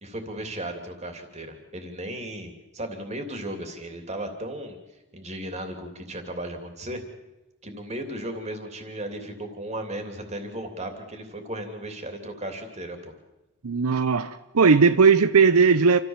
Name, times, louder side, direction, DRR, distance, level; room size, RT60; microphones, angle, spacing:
voice 1, 0.0-4.8 5.1-7.0 7.6-13.1, right 1 dB, 30° right, 3.0 m, -35 dB
voice 2, 13.6-16.0, right 5 dB, 80° right, 0.7 m, -18 dB
28.5 x 14.0 x 7.4 m
head